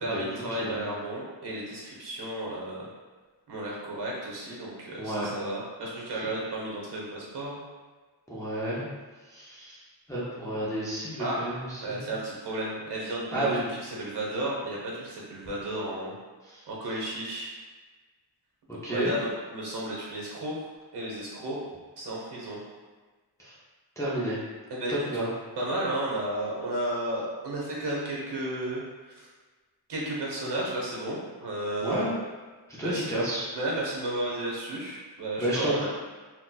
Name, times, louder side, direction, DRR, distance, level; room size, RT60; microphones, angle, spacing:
voice 1, 0.0-2.9 3.5-7.6 11.2-11.4 11.8-16.2 16.7-17.5 18.9-20.6 20.9-21.6 22.0-22.6 24.7-24.9 25.6-29.3 29.9-32.1 32.8-33.1 33.5-35.9, right 1 dB, 65° right, -4 dB, 0.9 m, -33 dB
voice 2, 5.0-5.3 8.3-8.8 9.3-12.1 13.3-13.6 16.4-16.6 18.7-19.1 23.4-23.5 24.0-24.4 24.9-25.3 31.8-32.1 32.7-33.5 35.4-35.9, right 1 dB, 5° left, -8 dB, 0.4 m, -31 dB
4.1 x 2.1 x 2.2 m, 1.3 s
wide cardioid pair, 160°, 44 cm